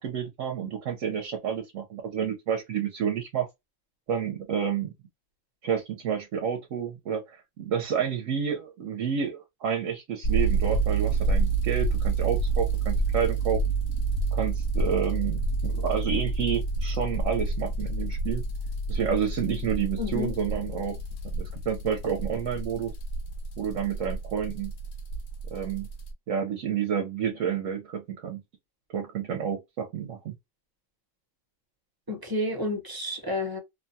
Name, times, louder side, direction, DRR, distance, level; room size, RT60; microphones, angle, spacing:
voice 1, 0.0-3.5 4.1-4.9 5.6-13.6 14.3-18.4 18.9-21.0 21.3-22.9 23.6-24.7 25.5-25.9 26.3-28.4 28.9-30.3, right 8 dB, 75° right, 1.1 m, -30 dB
sound 1, 10.2-26.1, right 3 dB, 60° left, 0.8 m, -28 dB
voice 2, 20.0-20.3 32.1-33.6, left 2 dB, 20° right, 0.8 m, -30 dB
2.9 x 2.3 x 2.6 m
omnidirectional pair, 1.4 m